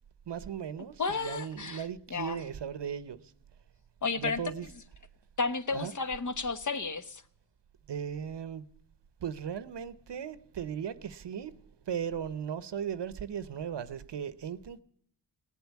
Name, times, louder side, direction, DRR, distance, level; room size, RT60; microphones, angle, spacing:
voice 1, 0.3-3.3 4.2-4.7 5.7-5.9 7.9-8.6 9.2-14.8, right 8 dB, 65° right, 0.9 m, -37 dB
voice 2, 1.0-1.8 2.1-2.4 4.0-4.4 5.4-7.2, left 4 dB, 40° left, 1.2 m, -32 dB
18.5 x 8.2 x 8.3 m
wide cardioid pair, 90°, 46 cm